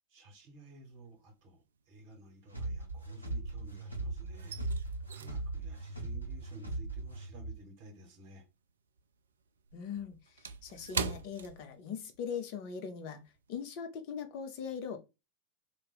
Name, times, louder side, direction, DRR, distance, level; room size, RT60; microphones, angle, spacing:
voice 1, 0.1-8.5, right 2 dB, 40° right, 1.5 m, -54 dB
sound 1, 0.9-1.5 1.8-3.7 4.0-8.7 9.0-12.3 12.6-12.8 13.3-13.5, right 6 dB, 70° right, 0.3 m, -43 dB
sound 2, 2.5-7.6, right 2 dB, 85° left, 0.9 m, -39 dB
voice 2, 9.7-13.2 13.5-15.0, left 7 dB, 45° left, 0.7 m, -40 dB
2.7 x 2.5 x 3.9 m
figure-of-eight pair, 90°, 0 cm